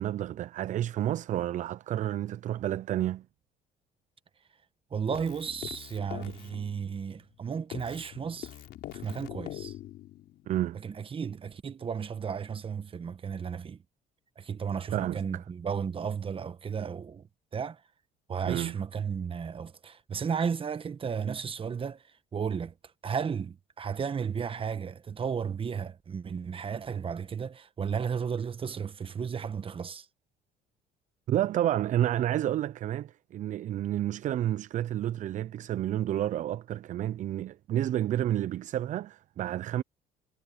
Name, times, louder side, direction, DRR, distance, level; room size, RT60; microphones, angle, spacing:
voice 1, 0.0-3.2 10.5-10.8 14.9-15.4 18.5-18.8 31.3-39.8, right 12 dB, 50° right, 0.4 m, -30 dB
voice 2, 4.9-8.6 8.9-9.7 10.8-13.8 14.4-17.2 17.5-17.8 18.3-22.0 22.3-22.7 23.0-30.1, right 6 dB, 30° right, 1.2 m, -34 dB
Keyboard (musical), 5.1-7.4 7.7-10.5, left 14 dB, 75° left, 5.1 m, -43 dB
cardioid pair, 110°, 17 cm